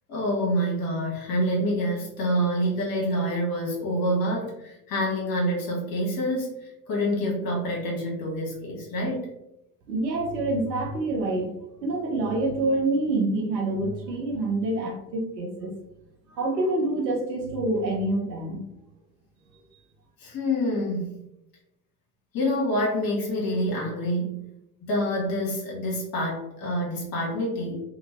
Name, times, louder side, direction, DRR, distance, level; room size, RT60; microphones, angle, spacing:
voice 1, 0.1-9.3 20.2-21.1 22.3-24.4 24.8-27.8, equal, 45° left, -2 dB, 1.2 m, -27 dB
voice 2, 9.9-11.5 11.8-15.7 16.3-18.6, right 2 dB, 85° right, 0 dB, 0.7 m, -26 dB
2.9 x 2.6 x 2.8 m, 0.85 s
figure-of-eight pair, 60°, 49 cm